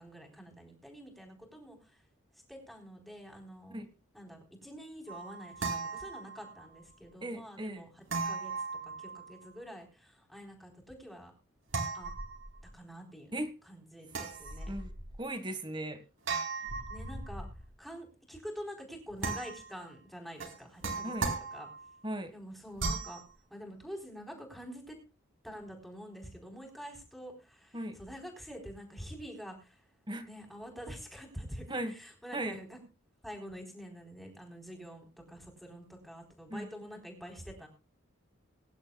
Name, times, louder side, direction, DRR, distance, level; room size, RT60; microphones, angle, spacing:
voice 1, 0.0-2.0 2.3-3.8 4.1-11.3 11.9-12.1 12.7-13.4 13.6-14.8 16.9-17.5 17.8-21.7 22.3-23.2 23.5-25.0 25.4-29.9 30.3-32.8 33.2-37.7, equal, ahead, 2 dB, 4.1 m, -47 dB
sound 1, 5.1-6.7 8.1-9.5 11.7-12.7 14.1-15.2 16.3-17.7 19.2-19.8 20.4-22.0 22.8-23.2, right 4 dB, 65° right, 4.0 m, -37 dB
voice 2, 7.2-7.8 13.3-13.5 14.7-14.9 15.2-16.0 21.0-21.3 22.0-22.3 27.7-28.0 30.1-30.2 31.7-31.9 32.3-32.6 36.5-36.7, right 1 dB, 20° right, 10 dB, 1.6 m, -37 dB
23.0 x 11.0 x 2.3 m, 0.32 s
head